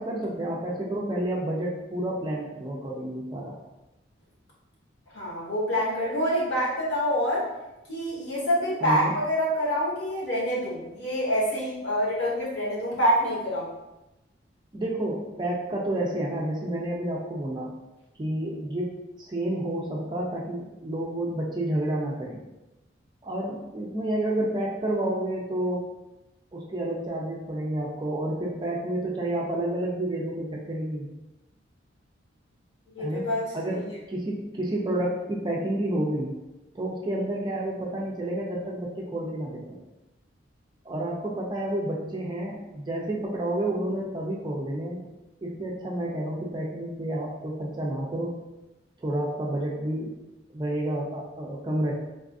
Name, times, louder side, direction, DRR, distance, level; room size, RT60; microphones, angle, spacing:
voice 1, 0.0-3.6 8.8-9.1 14.7-17.7 18.2-22.4 23.2-25.9 26.5-31.1 33.0-33.3 33.5-36.3 36.7-39.8 40.8-45.0 45.4-48.4 49.0-50.2 50.5-51.9, right 1 dB, 25° right, -2 dB, 0.4 m, -30 dB
voice 2, 5.1-7.5 7.9-13.7 32.9-33.9, equal, 60° left, -6 dB, 1.1 m, -26 dB
3.9 x 2.4 x 2.4 m, 0.99 s
head